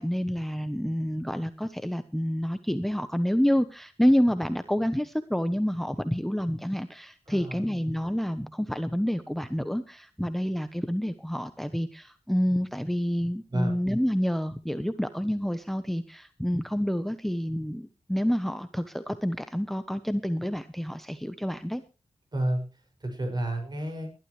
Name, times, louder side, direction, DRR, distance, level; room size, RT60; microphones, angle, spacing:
voice 1, 0.0-21.8, equal, ahead, 11 dB, 0.9 m, -28 dB
voice 2, 7.3-7.6 13.5-13.8 22.3-22.6 23.0-24.1, right 1 dB, 40° right, 4 dB, 6.4 m, -30 dB
20.0 x 12.5 x 3.2 m, 0.31 s
cardioid pair, 70°, 11 cm